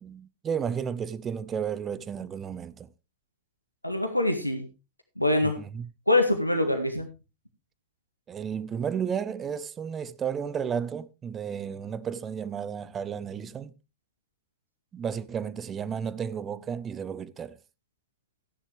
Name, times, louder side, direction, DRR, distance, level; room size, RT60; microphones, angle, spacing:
voice 1, 0.0-2.9 5.4-5.9 8.3-13.7 14.9-17.6, right 7 dB, 25° right, 0.7 m, -33 dB
voice 2, 3.8-4.7 5.2-5.6 6.1-7.1, left 1 dB, 90° left, 1.6 m, -24 dB
13.5 x 10.0 x 3.4 m
figure-of-eight pair, 90°, 0 cm